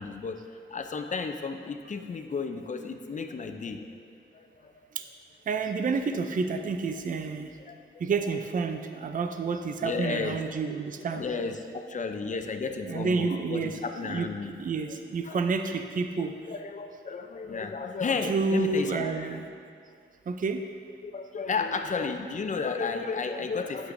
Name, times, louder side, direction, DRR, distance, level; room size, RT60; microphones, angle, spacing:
voice 1, 0.0-3.9 4.3-4.9 7.7-7.8 9.8-10.4 11.1-14.6 15.2-15.4 16.5-19.4 21.0-23.9, left 4 dB, 40° left, 6 dB, 0.5 m, -33 dB
voice 2, 5.5-7.5 8.0-11.2 12.8-14.3 14.6-16.3 18.2-19.4 20.3-20.6, right 4 dB, 40° right, 6 dB, 0.4 m, -29 dB
9.7 x 8.6 x 2.6 m, 2.4 s
wide cardioid pair, 145°, 21 cm